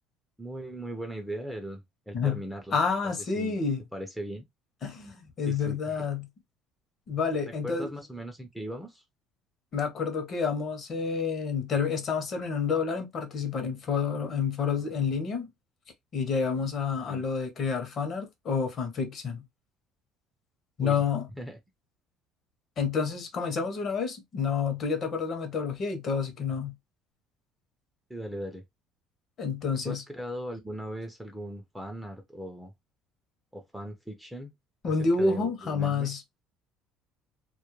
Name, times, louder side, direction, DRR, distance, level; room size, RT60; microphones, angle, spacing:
voice 1, 0.4-2.7 3.4-3.5 3.9-4.4 5.5-5.8 7.6-9.0 17.1-17.2 20.8-21.0 21.3-21.6 28.1-28.6 29.8-32.7 33.5-34.5 34.8-36.1, right 1 dB, ahead, 0.4 m, -38 dB
voice 2, 2.7-3.8 4.8-6.3 7.1-7.9 9.7-15.5 16.1-19.4 20.8-21.3 22.8-26.7 29.4-30.0 34.8-36.2, left 5 dB, 40° left, 0.7 m, -29 dB
2.2 x 2.0 x 2.9 m
cardioid pair, 135°, 0 cm